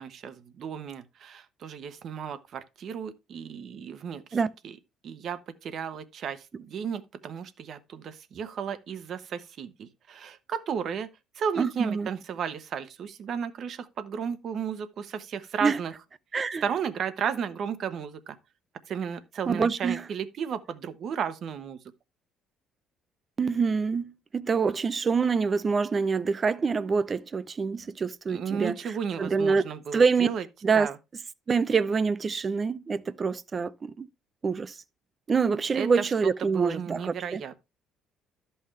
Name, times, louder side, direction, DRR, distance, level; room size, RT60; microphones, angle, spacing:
voice 1, 0.0-4.4 4.6-4.8 5.0-11.1 11.3-15.9 16.6-18.4 18.9-21.8 28.3-30.4 30.7-31.0 35.7-37.6, right 7 dB, 45° right, 1.0 m, -34 dB
voice 2, 11.6-12.1 15.6-15.8 16.3-16.6 19.5-20.0 23.4-28.8 29.2-29.6 29.9-30.3 30.6-30.9 31.5-34.1 34.4-34.8 35.3-37.4, right 5 dB, 25° right, 0.5 m, -26 dB
13.0 x 5.6 x 3.2 m
cardioid pair, 145°, 0 cm